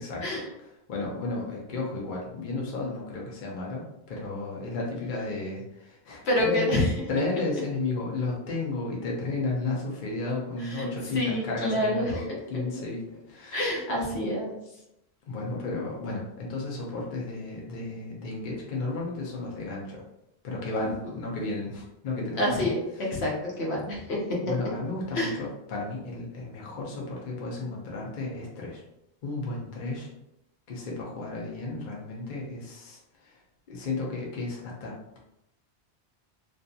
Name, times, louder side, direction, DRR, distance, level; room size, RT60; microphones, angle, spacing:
voice 1, 0.0-6.6 7.1-13.7 15.3-20.0 20.4-23.2 24.4-28.8 29.2-30.1 30.7-33.4 33.7-35.2, left 3 dB, 55° left, -3 dB, 0.7 m, -33 dB
voice 2, 6.2-6.9 10.7-10.9 11.1-12.1 13.5-14.5 22.4-22.8 23.1-24.2 25.1-25.3, left 1 dB, 80° left, -3 dB, 1.0 m, -27 dB
2.6 x 2.5 x 2.3 m, 0.85 s
omnidirectional pair, 1.1 m